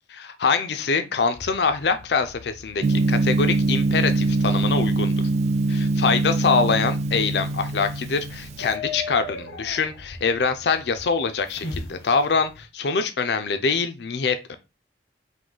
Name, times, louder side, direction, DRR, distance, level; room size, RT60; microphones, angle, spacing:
voice 1, 0.1-5.2 5.7-14.6, left 5 dB, 65° left, 9 dB, 0.5 m, -24 dB
sound 1, 1.4-12.7, left 3 dB, 85° left, 1.0 m, -40 dB
Gong, 2.8-8.7, right 2 dB, 40° right, 0.3 m, -23 dB
3.7 x 2.6 x 3.8 m, 0.27 s
head